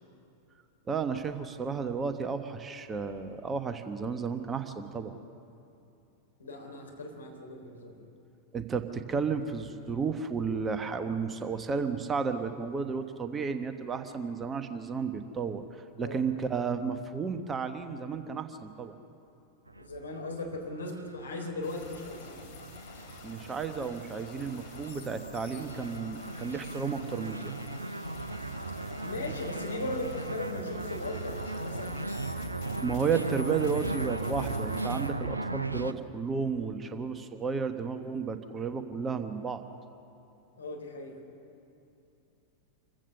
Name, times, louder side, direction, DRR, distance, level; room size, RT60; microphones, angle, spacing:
voice 1, 0.9-5.1 8.5-18.9 23.2-27.6 32.8-39.6, right 5 dB, 20° right, 8 dB, 1.1 m, -33 dB
voice 2, 6.4-8.0 16.0-16.2 19.8-22.4 29.0-32.1 40.6-41.2, left 2 dB, 75° left, 1 dB, 3.7 m, -38 dB
sound 1, 19.7-35.9, right 2 dB, 80° right, 0.6 m, -37 dB
sound 2, 21.6-35.1, left 5 dB, 50° left, 3.1 m, -49 dB
26.5 x 15.0 x 6.8 m, 2.7 s
figure-of-eight pair, 90°, 0 cm